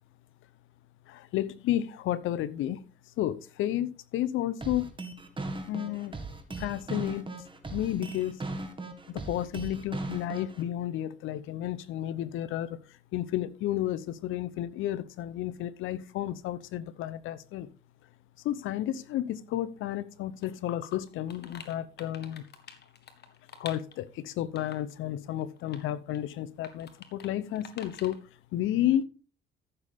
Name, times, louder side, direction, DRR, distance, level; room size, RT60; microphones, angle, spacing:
voice 1, 1.1-2.9 3.2-4.9 5.7-6.2 6.6-7.4 7.7-8.4 9.1-12.8 13.1-17.7 18.4-22.4 23.6-28.2 28.5-29.0, left 12 dB, 90° left, 0.8 m, -32 dB
sound 1, 4.6-10.6, right 2 dB, 25° right, 1.9 m, -38 dB
sound 2, 20.4-20.5 20.9-24.1 24.6-24.9 25.4-25.9 26.1-26.3 26.6-27.3 27.6-28.2, left 7 dB, 55° left, 1.7 m, -48 dB
14.0 x 6.8 x 3.6 m
cardioid pair, 90°, 20 cm